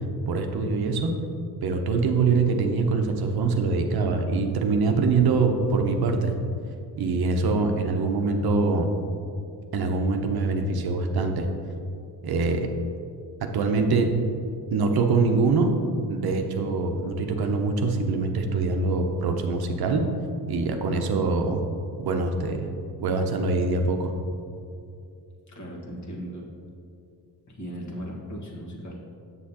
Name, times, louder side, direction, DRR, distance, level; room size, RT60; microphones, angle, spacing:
voice 1, 0.3-1.1 1.6-6.4 7.0-8.9 9.7-11.5 12.2-12.7 13.5-14.1 14.7-15.7 16.1-20.0 20.5-21.7 22.0-22.7 23.0-24.1, right 4 dB, 65° right, 4 dB, 0.8 m, -24 dB
voice 2, 25.5-26.4 27.5-29.0, equal, 45° left, -3 dB, 1.6 m, -37 dB
7.2 x 6.4 x 2.9 m, 2.5 s
cardioid pair, 80°, 41 cm